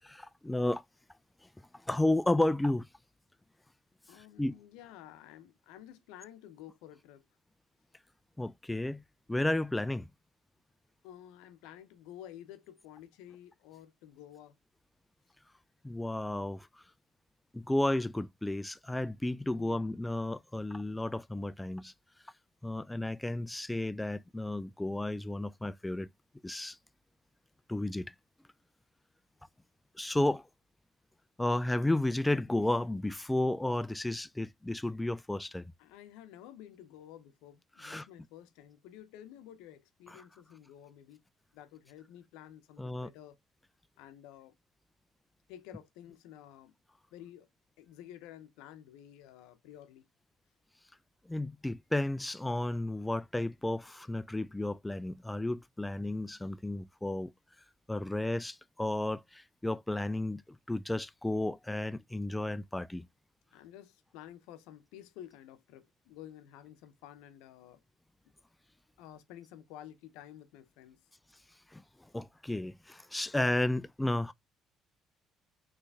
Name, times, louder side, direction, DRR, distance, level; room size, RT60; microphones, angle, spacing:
voice 1, 0.0-0.8 1.9-2.9 4.4-4.5 8.4-9.0 9.3-10.1 15.8-16.7 17.5-21.9 22.6-26.1 26.4-26.8 27.7-28.1 30.0-30.4 31.4-35.6 37.8-38.1 42.8-43.1 51.3-57.3 57.9-60.4 60.7-63.0 71.7-71.8 72.1-74.3, left 1 dB, 10° left, 0.3 m, -32 dB
voice 2, 4.1-7.2 11.0-14.6 19.5-20.0 35.8-41.2 41.5-43.4 44.0-44.5 45.5-46.7 47.1-47.5 47.8-50.1 63.5-67.8 69.0-71.0, left 11 dB, 85° left, 0.7 m, -51 dB
4.0 x 3.2 x 3.4 m
supercardioid pair, 80°, 0 cm